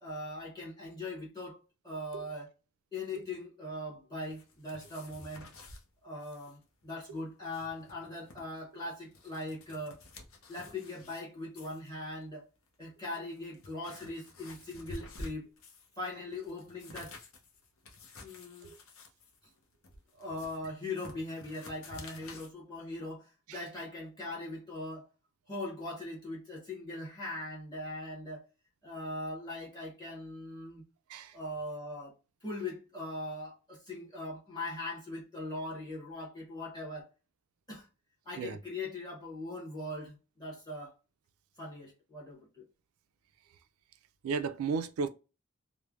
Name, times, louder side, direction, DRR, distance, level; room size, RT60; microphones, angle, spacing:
voice 1, 0.0-1.6 1.8-2.5 2.9-5.5 6.0-10.0 10.5-12.5 12.8-15.5 16.0-17.2 18.2-18.7 20.1-25.1 25.5-28.4 28.8-30.8 31.3-37.1 37.7-37.9 38.2-40.9 41.6-42.7, left 2 dB, 20° left, 0.9 m, -40 dB
sound 1, 4.3-5.8 6.2-6.6 6.8-6.9 7.3-8.4 8.9-11.2 11.6-11.9 12.7-12.8 13.3-15.9 16.3-22.5, left 2 dB, 65° left, 0.6 m, -50 dB
voice 2, 44.2-45.1, right 5 dB, 75° right, 0.3 m, -34 dB
3.1 x 2.1 x 2.3 m
head